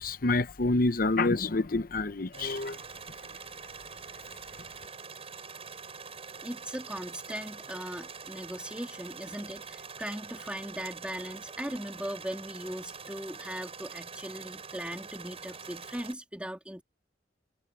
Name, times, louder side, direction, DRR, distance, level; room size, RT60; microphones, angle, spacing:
voice 1, 0.0-2.8, left 2 dB, 50° left, 0.8 m, -27 dB
sound 1, 2.3-16.1, right 5 dB, 35° right, 7.1 m, -45 dB
voice 2, 6.1-16.8, equal, 5° right, 2.2 m, -39 dB
head